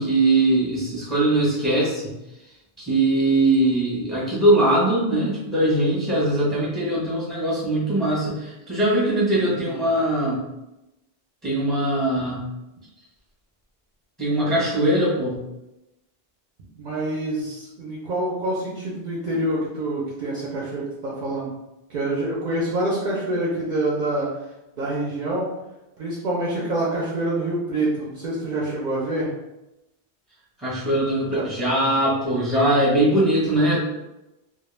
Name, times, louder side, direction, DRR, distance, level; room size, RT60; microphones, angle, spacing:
voice 1, 0.0-2.1 2.8-10.4 11.4-12.5 14.2-15.4 30.6-33.8, right 1 dB, ahead, -7 dB, 0.7 m, -21 dB
voice 2, 9.4-9.9 14.4-14.6 16.8-21.5 21.9-24.3 24.8-25.5 26.0-29.3 31.3-31.5, right 1 dB, 55° right, -6 dB, 0.6 m, -26 dB
2.2 x 2.1 x 3.1 m, 0.95 s
omnidirectional pair, 1.1 m